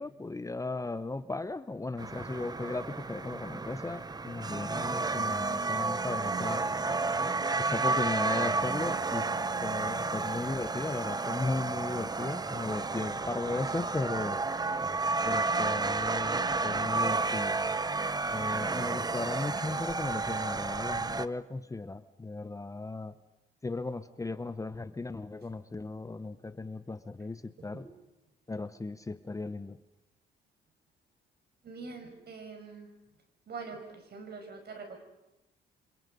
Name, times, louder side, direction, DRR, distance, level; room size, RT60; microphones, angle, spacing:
voice 1, 0.0-6.7 7.6-14.4 15.2-17.6 18.3-23.2 23.6-27.9 28.5-29.8, left 3 dB, 15° left, 13 dB, 0.8 m, -36 dB
sound 1, 2.0-21.3, right 3 dB, 20° right, 0.8 m, -31 dB
voice 2, 5.1-5.5 27.6-27.9 31.6-32.9 33.5-35.0, right 4 dB, 55° right, 5 dB, 5.8 m, -44 dB
28.0 x 26.0 x 5.4 m, 0.94 s
cardioid pair, 90°, 20 cm